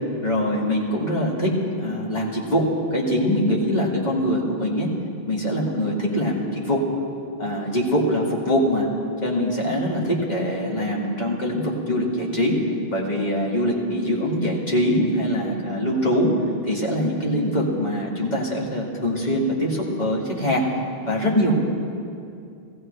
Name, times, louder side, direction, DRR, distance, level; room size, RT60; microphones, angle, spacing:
voice 1, 0.2-4.9 5.3-6.8 7.4-8.9 9.2-12.6 12.9-16.3 16.6-20.6 21.1-21.6, equal, 40° left, -3 dB, 2.1 m, -23 dB
17.5 x 15.5 x 3.3 m, 2.5 s
omnidirectional pair, 1.1 m